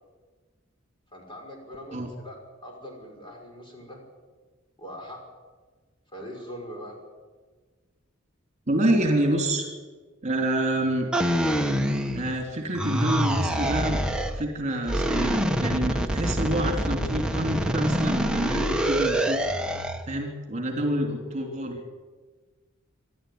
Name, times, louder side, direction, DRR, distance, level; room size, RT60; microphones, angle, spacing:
voice 1, 1.1-4.0 4.8-5.2 6.1-7.0, equal, 25° left, 1 dB, 5.6 m, -41 dB
voice 2, 8.7-9.7 10.2-11.1 12.1-14.0 14.4-19.4 20.1-22.0, right 1 dB, 35° right, 3 dB, 3.4 m, -27 dB
sound 1, 11.1-12.4 12.8-14.4 14.8-20.0, equal, 5° right, 1.2 m, -26 dB
26.0 x 12.0 x 9.6 m, 1.4 s
head